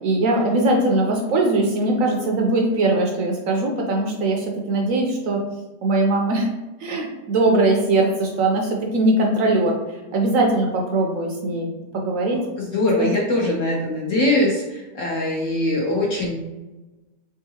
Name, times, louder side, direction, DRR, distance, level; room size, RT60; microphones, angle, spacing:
voice 1, 0.0-5.4 5.8-6.5 6.8-9.8 10.1-11.7 11.9-12.4 13.0-13.1, right 2 dB, 65° right, 0 dB, 0.8 m, -20 dB
voice 2, 12.6-16.3, left 1 dB, 60° left, -3 dB, 0.9 m, -22 dB
3.7 x 3.6 x 2.7 m, 1.1 s
omnidirectional pair, 1.8 m